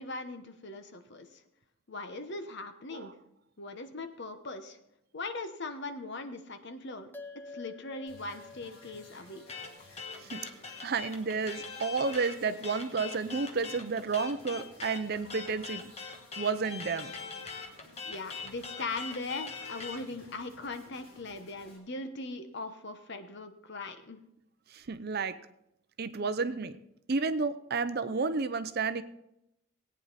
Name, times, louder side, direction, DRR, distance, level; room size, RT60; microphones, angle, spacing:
voice 1, 0.0-1.4 1.9-3.1 3.6-4.8 5.1-7.1 7.3-9.4 18.1-24.2, left 3 dB, 50° left, 8 dB, 1.0 m, -40 dB
sound 1, 7.1-11.8, left 3 dB, 10° left, 0.4 m, -51 dB
sound 2, 8.1-21.8, left 1 dB, 80° left, 4.5 m, -56 dB
sound 3, 9.5-20.0, left 5 dB, 30° left, 1.2 m, -42 dB
voice 2, 10.8-15.9 16.4-17.1 24.7-25.4 26.0-26.8 27.1-29.0, right 4 dB, 45° right, 12 dB, 0.6 m, -31 dB
18.0 x 9.0 x 4.1 m, 0.82 s
head